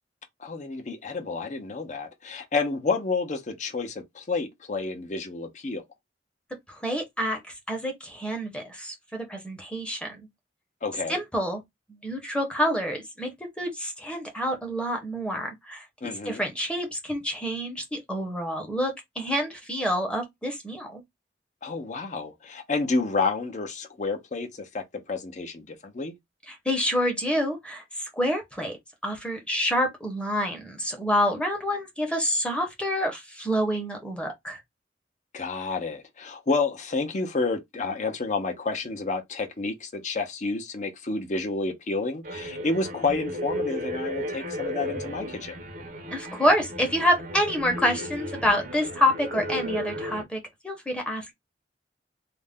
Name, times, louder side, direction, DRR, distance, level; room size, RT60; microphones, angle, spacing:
voice 1, 0.4-5.8 10.8-11.2 16.0-16.4 21.6-26.1 35.3-45.6, left 3 dB, 40° left, 0.6 m, -30 dB
voice 2, 6.7-10.3 11.1-11.6 12.0-13.3 13.6-21.0 26.5-28.8 29.0-34.6 46.1-50.4 50.6-51.3, equal, 5° left, 0.7 m, -27 dB
sound 1, 42.2-50.2, equal, 50° right, 0.6 m, -34 dB
2.4 x 2.1 x 3.4 m
head